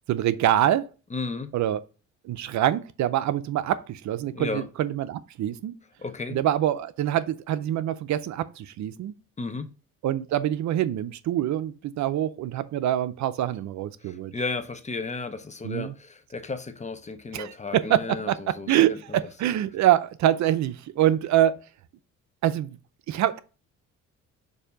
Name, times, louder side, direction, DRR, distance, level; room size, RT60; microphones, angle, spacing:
voice 1, 0.1-0.9 1.5-1.8 2.2-5.8 6.3-9.1 10.0-14.3 15.6-15.9 17.3-21.6 22.4-22.8 23.1-23.4, right 12 dB, 70° right, 0.5 m, -25 dB
voice 2, 1.1-1.5 4.3-4.7 6.0-6.4 9.4-9.7 14.0-19.2, left 3 dB, 25° left, 0.7 m, -34 dB
6.9 x 2.7 x 5.1 m
cardioid pair, 90°, 30 cm